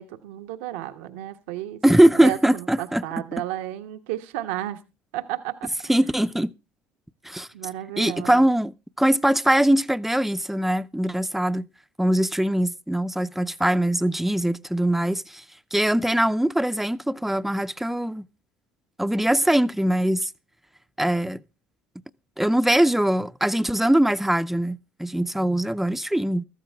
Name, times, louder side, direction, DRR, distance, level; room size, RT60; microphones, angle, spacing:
voice 1, 0.0-1.8 2.2-4.8 5.1-5.7 7.5-8.5, right 14 dB, 85° right, 1.2 m, -33 dB
voice 2, 1.8-3.0 5.9-6.5 7.2-7.5 8.0-11.7 12.0-15.4 15.7-18.3 19.0-20.3 21.0-21.4 22.4-26.5, right 1 dB, 5° right, 0.6 m, -22 dB
14.0 x 12.5 x 3.5 m
supercardioid pair, 80°, 6 cm